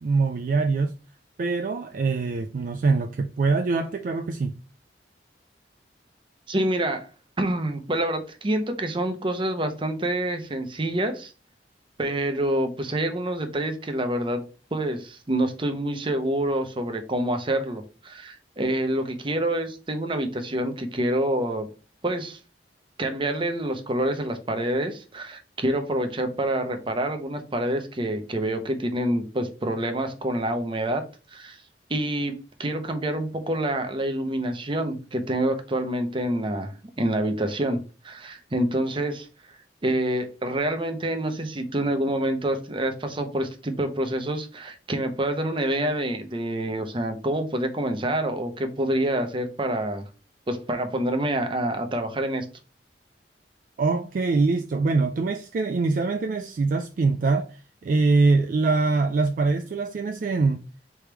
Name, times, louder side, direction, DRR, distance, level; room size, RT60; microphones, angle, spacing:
voice 1, 0.0-0.9 1.4-4.6 53.8-60.6, right 3 dB, 50° right, 0.3 m, -23 dB
voice 2, 6.5-7.1 7.4-11.3 12.0-14.4 14.7-21.7 22.0-22.4 23.0-31.0 31.3-31.6 31.9-37.8 38.0-39.3 39.8-50.0 50.5-52.5, right 1 dB, 30° right, 0.7 m, -27 dB
3.4 x 3.1 x 4.5 m
head